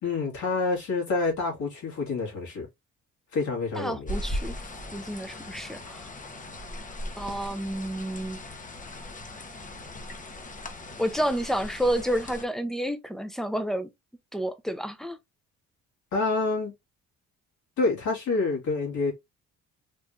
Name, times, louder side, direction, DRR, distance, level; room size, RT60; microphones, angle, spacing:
voice 1, 0.0-2.7 3.3-4.1 16.1-16.7 17.8-19.1, left 3 dB, 75° left, 1.9 m, -27 dB
voice 2, 3.7-4.5 4.9-6.1 7.2-8.4 11.0-13.9 14.3-15.2, equal, ahead, 0.6 m, -30 dB
sound 1, 4.1-12.5, left 1 dB, 25° left, 0.8 m, -38 dB
3.6 x 2.8 x 2.4 m
cardioid pair, 90°, 30 cm